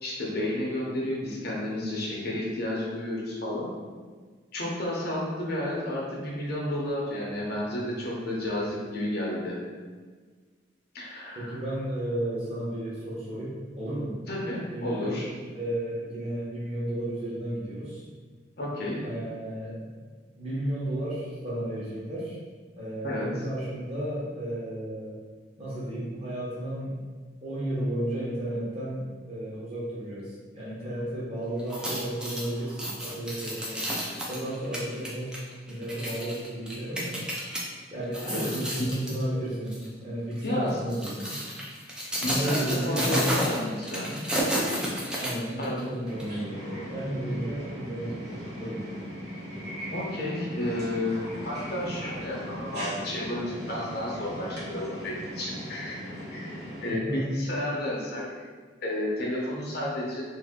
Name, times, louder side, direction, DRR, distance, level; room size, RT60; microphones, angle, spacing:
voice 1, 0.0-3.7 4.5-9.6 10.9-11.6 14.3-15.3 18.6-19.0 23.0-23.3 38.2-38.4 38.7-39.0 40.4-41.0 42.2-44.2 45.6-45.9 49.9-56.0 56.3-58.2 58.8-60.2, left 1 dB, 55° left, -4 dB, 0.7 m, -31 dB
voice 2, 11.4-14.2 14.7-15.1 15.5-18.0 19.0-19.9 20.4-22.4 22.8-25.2 25.6-26.9 27.4-33.9 34.3-35.3 35.7-37.3 37.9-41.4 42.2-43.3 45.2-48.3 48.6-48.9 56.8-57.3, right 1 dB, 30° right, -8 dB, 1.0 m, -33 dB
sound 1, 31.6-37.6 38.0-39.2 39.7-39.9 40.7-45.8 46.2-46.3, equal, 5° right, 0.4 m, -31 dB
sound 2, 46.0-56.9, equal, 55° right, 1.0 m, -38 dB
2.7 x 2.6 x 3.6 m, 1.5 s
head